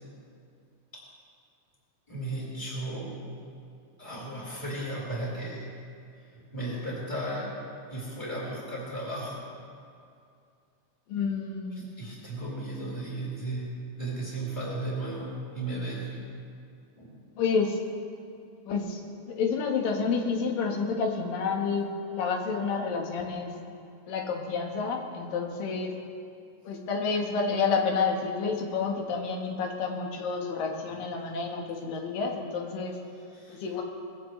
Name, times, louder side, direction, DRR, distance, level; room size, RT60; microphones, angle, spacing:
voice 1, 2.1-3.2 4.0-5.7 6.3-7.6 7.9-9.4 12.0-16.2 17.0-17.2 33.3-33.6, right 1 dB, 5° left, -6 dB, 4.1 m, -35 dB
voice 2, 11.1-11.9 17.4-17.8 18.7-19.0 19.3-23.5 24.1-25.9 26.7-33.0 33.5-33.8, left 5 dB, 80° left, 1 dB, 3.1 m, -29 dB
21.0 x 15.5 x 3.2 m, 2.4 s
omnidirectional pair, 3.9 m